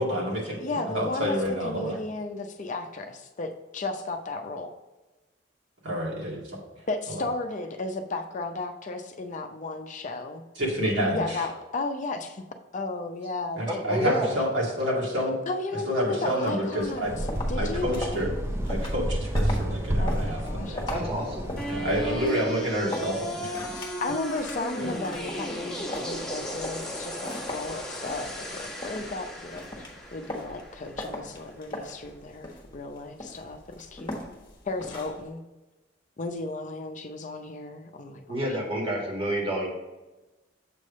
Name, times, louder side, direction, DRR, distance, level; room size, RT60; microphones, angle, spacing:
voice 1, 0.0-2.0 5.8-6.4 7.1-7.2 10.6-11.4 13.6-15.4 15.8-17.1 17.6-18.3 18.7-20.8 21.7-23.6 24.8-24.9, equal, 75° right, -4 dB, 2.3 m, -28 dB
voice 2, 0.5-1.4 1.6-4.7 6.9-10.4 11.1-12.4 12.7-14.2 15.5-17.1 17.5-18.2 20.0-21.4 23.7-29.8 30.1-34.2 34.6-35.4 36.2-38.4, left 3 dB, 45° left, 5 dB, 0.6 m, -34 dB
voice 3, 13.7-14.3 20.9-21.5 38.3-39.7, equal, 30° right, -2 dB, 1.7 m, -29 dB
sound 1, 16.8-35.3, left 1 dB, 25° left, 1.3 m, -40 dB
sound 2, 17.0-22.3, equal, 15° right, 0.4 m, -30 dB
sound 3, 21.6-31.6, equal, 5° left, 1.3 m, -36 dB
7.5 x 3.3 x 5.3 m, 1.1 s
head